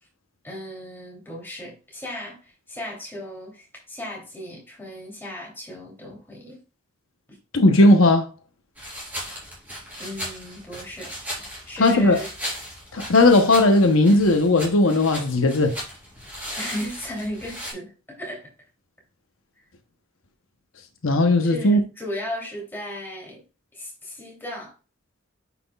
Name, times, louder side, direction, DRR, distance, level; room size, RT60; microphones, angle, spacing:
voice 1, 0.4-6.6 7.3-7.4 10.0-11.1 11.7-12.3 16.6-18.5 21.4-23.4 23.7-24.7, left 1 dB, 10° left, 3.0 m, -36 dB
voice 2, 7.5-8.3 11.8-12.2 12.9-15.7 21.0-21.8, left 2 dB, 80° left, 0.9 m, -17 dB
sound 1, 8.8-17.7, equal, 10° right, 4.1 m, -37 dB
9.3 x 6.0 x 2.3 m
head